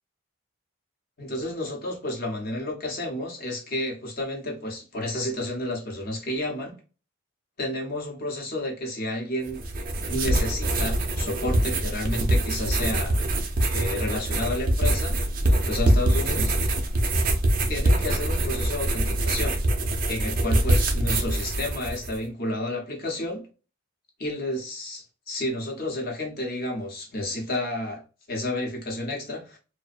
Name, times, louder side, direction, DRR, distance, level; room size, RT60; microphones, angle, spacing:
voice 1, 1.2-6.7 7.6-9.6 10.1-13.2 13.7-15.2 15.4-16.5 17.7-19.6 20.1-23.5 24.2-28.0 28.3-29.6, left 1 dB, 45° left, 0.8 m, -31 dB
sound 1, 9.5-22.2, right 1 dB, 40° right, 0.4 m, -24 dB
2.4 x 2.1 x 2.4 m
head